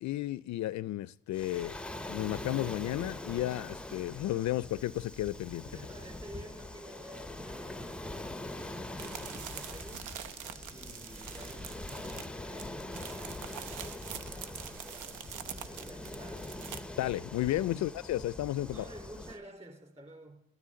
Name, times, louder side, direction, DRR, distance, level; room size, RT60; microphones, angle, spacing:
voice 1, 0.0-1.8 2.1-5.7 17.0-18.8, left 15 dB, 65° left, 0.4 m, -33 dB
Waves surf, 1.3-19.4, left 1 dB, 5° left, 0.6 m, -43 dB
voice 2, 5.6-10.1 10.7-16.5 17.7-17.9 18.7-20.4, right 1 dB, 20° right, 3.9 m, -51 dB
sound 1, 9.0-16.8, right 8 dB, 85° right, 0.9 m, -45 dB
13.0 x 13.0 x 3.8 m
cardioid pair, 90°, 30 cm